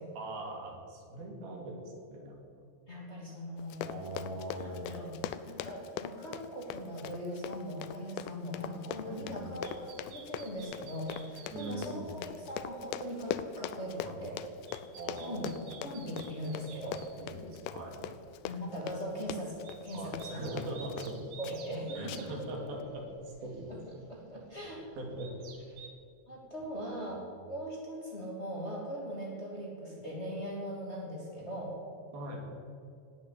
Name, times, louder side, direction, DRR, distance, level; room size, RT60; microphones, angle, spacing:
voice 1, 0.2-2.4 3.9-5.0 9.1-9.6 11.5-12.2 14.0-14.2 15.0-15.9 17.2-18.2 19.9-21.3 21.9-23.0 23.4-23.7 25.0-25.3 32.1-32.5, right 1 dB, 90° right, 1 dB, 4.5 m, -41 dB
voice 2, 2.9-4.0 4.6-5.1 5.5-14.4 15.1-15.5 15.8-17.1 18.4-19.6 19.8-20.4 20.7-20.8 21.4-22.7 23.7-23.8 24.1-24.8 26.3-31.8, equal, 20° left, -3 dB, 2.6 m, -40 dB
Run, 3.6-21.2 21.4-21.8 22.1-22.4 22.8-22.9, left 10 dB, 80° left, 2.1 m, -42 dB
sound 1, 9.6-12.2 12.6-13.3 13.8-17.7 18.2-18.4 18.8-25.9, right 5 dB, 60° right, 3.2 m, -54 dB
18.5 x 8.2 x 8.6 m, 2.5 s
omnidirectional pair, 4.1 m